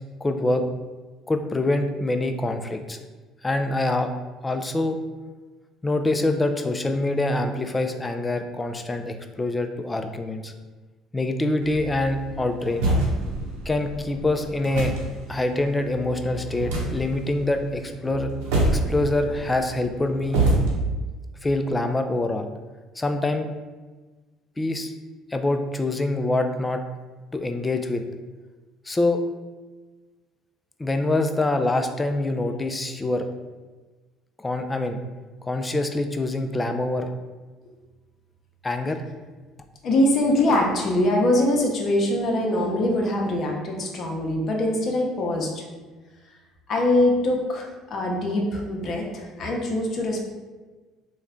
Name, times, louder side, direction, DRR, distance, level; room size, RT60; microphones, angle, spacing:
voice 1, 0.2-0.7 1.3-3.0 3.4-4.1 4.4-5.0 5.8-10.5 11.1-12.9 13.7-14.9 15.3-18.3 18.7-20.4 21.4-22.5 23.0-23.5 24.6-24.9 25.3-26.8 27.3-28.0 28.9-29.2 30.8-33.3 34.4-35.0 35.4-37.1 38.6-39.0, left 2 dB, 20° left, 7 dB, 0.3 m, -25 dB
sound 1, 11.6-20.8, right 2 dB, 80° right, 0.8 m, -27 dB
voice 2, 39.8-45.6 46.7-50.3, left 1 dB, 50° left, 0 dB, 0.7 m, -23 dB
3.1 x 2.2 x 3.6 m, 1.3 s
supercardioid pair, 80°, 0 cm